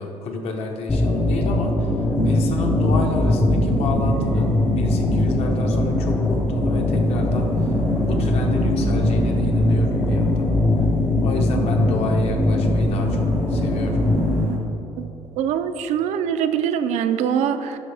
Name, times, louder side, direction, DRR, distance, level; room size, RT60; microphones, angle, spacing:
voice 1, 0.0-7.7 8.0-10.5 11.2-14.0, left 3 dB, 55° left, 2 dB, 1.0 m, -30 dB
sound 1, 0.9-14.4, left 2 dB, 15° left, 0.4 m, -21 dB
sound 2, 2.1-14.6, right 3 dB, 90° right, 1.5 m, -29 dB
voice 2, 15.4-17.8, right 8 dB, 65° right, 9 dB, 0.4 m, -23 dB
12.0 x 5.1 x 3.4 m, 3.0 s
cardioid pair, 165°, 13 cm